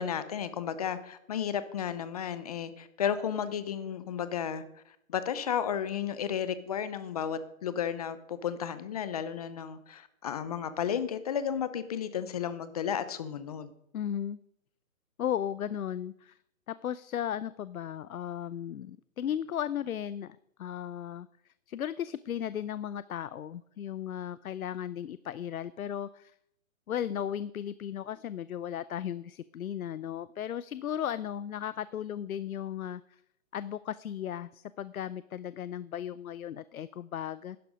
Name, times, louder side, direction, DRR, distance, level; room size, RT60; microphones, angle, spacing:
voice 1, 0.0-13.7, left 8 dB, 30° left, 0.7 m, -33 dB
voice 2, 13.9-14.4 15.2-16.4 16.7-26.3 26.9-33.2 33.5-37.6, left 10 dB, 90° left, 0.6 m, -36 dB
11.5 x 10.5 x 5.1 m
hypercardioid pair, 150°, 41 cm